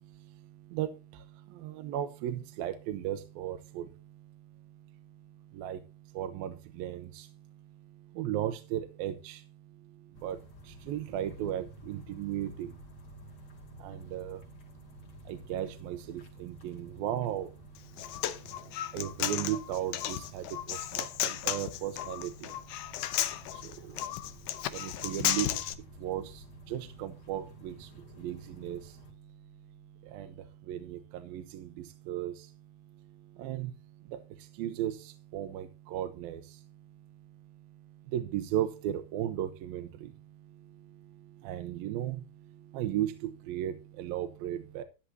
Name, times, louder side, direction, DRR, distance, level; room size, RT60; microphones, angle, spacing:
voice 1, 1.6-3.8 5.6-5.8 6.2-6.5 6.8-7.0 8.2-9.4 10.2-10.4 10.9-12.7 13.8-14.4 15.3-17.5 18.9-20.4 21.0-22.3 24.7-25.5 26.0-26.2 26.7-27.7 28.2-28.8 30.1-30.3 30.7-31.0 31.3-31.6 32.1-32.3 33.4-33.7 34.6-34.9 35.3-36.4 38.1-39.9 41.5-42.2 42.7-44.8, right 11 dB, 80° right, 8 dB, 2.6 m, -35 dB
sound 1, 10.1-29.1, left 2 dB, 50° left, 3.8 m, -53 dB
Human voice, 17.8-25.7, left 13 dB, 75° left, 2.0 m, -34 dB
13.0 x 10.0 x 2.7 m, 0.30 s
omnidirectional pair, 4.3 m